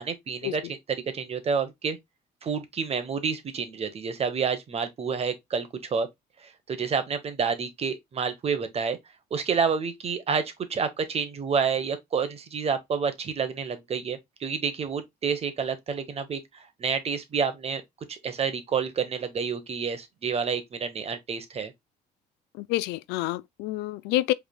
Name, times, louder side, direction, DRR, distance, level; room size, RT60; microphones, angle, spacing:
voice 1, 0.0-2.0 2.4-6.1 6.7-9.0 9.3-10.4 10.7-17.8 18.1-21.7, right 6 dB, 35° right, 1.0 m, -29 dB
voice 2, 22.6-24.3, left 16 dB, 90° left, 0.4 m, -28 dB
4.8 x 3.4 x 2.3 m
cardioid pair, 110°, 17 cm